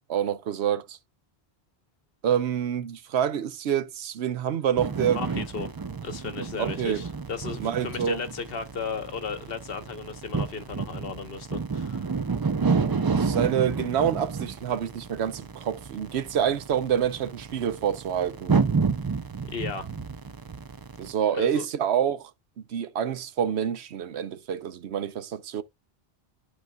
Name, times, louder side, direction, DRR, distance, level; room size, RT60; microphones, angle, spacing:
voice 1, 0.1-1.0 2.2-5.2 6.6-7.0 7.6-8.2 13.2-18.6 21.0-22.3 22.7-25.6, right 9 dB, 80° right, 1.0 m, -27 dB
sound 1, 4.8-21.1, right 5 dB, 35° right, 0.3 m, -30 dB
voice 2, 5.1-5.7 6.0-12.2 19.4-19.9 21.3-21.7, left 5 dB, 65° left, 1.1 m, -35 dB
12.0 x 4.4 x 2.2 m
omnidirectional pair, 1.1 m